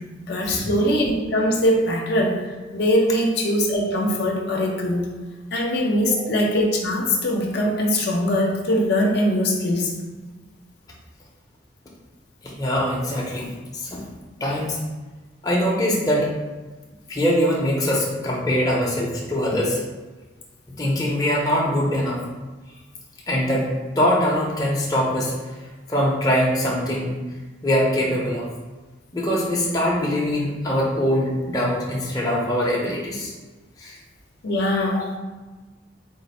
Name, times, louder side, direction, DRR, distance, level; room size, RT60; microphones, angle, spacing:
voice 1, 0.2-5.1 5.5-9.9 34.4-35.2, left 1 dB, 60° left, -1 dB, 0.6 m, -22 dB
voice 2, 12.4-14.0 14.4-14.8 15.4-16.3 17.1-19.8 20.8-22.2 23.3-23.7 24.0-25.3 25.9-27.1 27.6-28.5 29.1-33.3 33.8-34.0 34.9-35.0, equal, 20° left, -4 dB, 0.6 m, -22 dB
3.9 x 2.5 x 4.1 m, 1.2 s
head